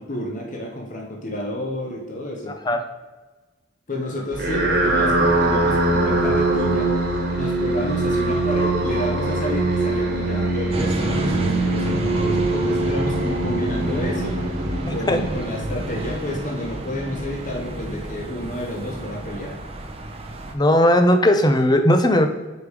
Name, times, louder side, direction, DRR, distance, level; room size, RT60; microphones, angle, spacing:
voice 1, 0.0-2.5 3.9-6.9 7.3-14.4 14.9-19.6, left 1 dB, 40° left, -1 dB, 1.0 m, -30 dB
sound 1, 4.3-15.8, right 2 dB, 55° right, 1.5 m, -22 dB
sound 2, 10.7-20.5, right 1 dB, 30° right, 0.7 m, -30 dB
voice 2, 20.5-22.3, left 1 dB, 20° left, 7 dB, 0.6 m, -17 dB
5.1 x 5.0 x 4.7 m, 1.2 s
head